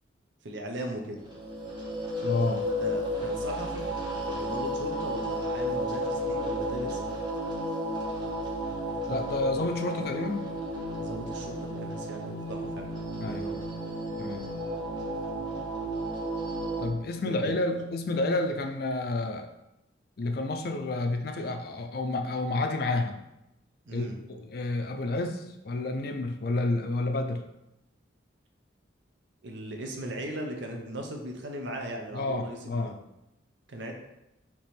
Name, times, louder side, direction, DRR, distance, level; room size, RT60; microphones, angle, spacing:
voice 1, 0.4-1.2 2.7-3.9 4.3-7.2 11.0-12.9 13.2-13.6 17.3-17.6 23.9-24.2 29.4-33.0 33.7-33.9, right 1 dB, 70° right, 2 dB, 0.7 m, -38 dB
sound 1, 1.2-16.9, equal, 25° right, 0.9 m, -33 dB
voice 2, 2.2-2.6 9.1-10.4 13.2-13.5 14.2-14.5 16.8-19.5 20.2-23.2 23.9-27.4 32.1-32.9, left 2 dB, 50° left, 6 dB, 0.4 m, -30 dB
3.4 x 3.0 x 4.2 m, 0.89 s
head